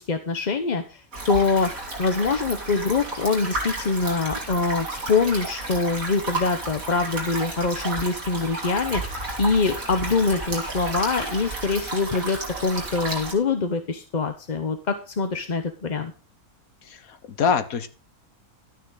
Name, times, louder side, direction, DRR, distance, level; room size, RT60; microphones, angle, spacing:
voice 1, 0.0-1.7 2.0-16.1, left 4 dB, 35° left, 7 dB, 0.8 m, -24 dB
sound 1, 1.1-13.3, right 2 dB, 65° right, 3.5 m, -32 dB
voice 2, 16.8-17.9, left 6 dB, 75° left, 11 dB, 1.5 m, -25 dB
12.0 x 9.5 x 3.9 m, 0.35 s
omnidirectional pair, 1.5 m